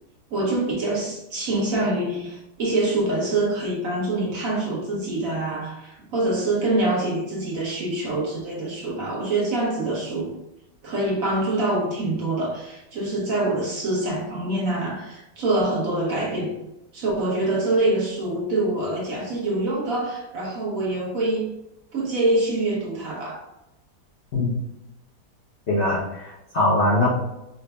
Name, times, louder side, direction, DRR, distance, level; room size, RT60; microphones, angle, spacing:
voice 1, 0.3-10.3 10.8-16.5 16.9-21.5 21.9-23.4, right 2 dB, 60° right, -3 dB, 1.1 m, -25 dB
voice 2, 25.7-27.1, left 2 dB, 55° left, -7 dB, 0.8 m, -21 dB
4.9 x 2.2 x 2.3 m, 0.92 s
omnidirectional pair, 1.8 m